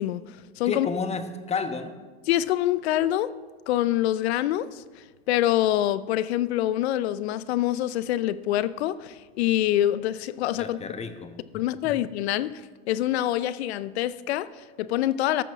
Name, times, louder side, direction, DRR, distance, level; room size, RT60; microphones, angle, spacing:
voice 1, 0.0-0.9 2.3-3.3 3.7-10.8 11.5-12.5 12.9-15.4, left 13 dB, 75° left, 17 dB, 0.6 m, -26 dB
voice 2, 0.6-2.0 10.6-11.4 11.8-11.9, left 4 dB, 20° left, 8 dB, 1.1 m, -31 dB
14.0 x 6.1 x 6.0 m, 1.4 s
hypercardioid pair, 110°, 32 cm